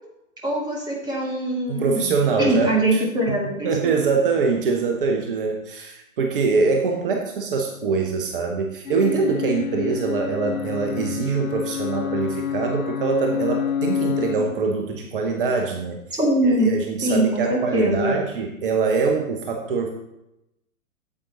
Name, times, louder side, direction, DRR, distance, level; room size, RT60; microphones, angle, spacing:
voice 1, 0.4-3.9 16.1-16.7 17.0-18.1, right 1 dB, 10° right, -2 dB, 1.9 m, -22 dB
voice 2, 1.7-3.4 3.6-16.0 16.4-19.9, right 4 dB, 40° right, 3 dB, 1.0 m, -24 dB
sound 1, 8.9-14.4, left 8 dB, 70° left, 0.8 m, -28 dB
8.8 x 7.7 x 3.9 m, 0.87 s
figure-of-eight pair, 115°, 43 cm